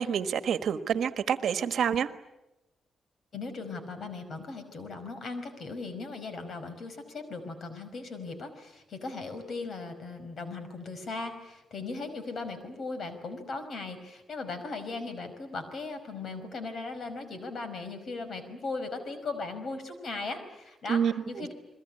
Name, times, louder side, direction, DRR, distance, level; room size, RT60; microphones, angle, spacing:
voice 1, 0.0-2.1 20.9-21.5, right 8 dB, 70° right, 10 dB, 1.4 m, -28 dB
voice 2, 3.3-21.5, left 3 dB, 55° left, 9 dB, 5.2 m, -38 dB
30.0 x 22.0 x 8.7 m, 0.93 s
cardioid pair, 120°, 0 cm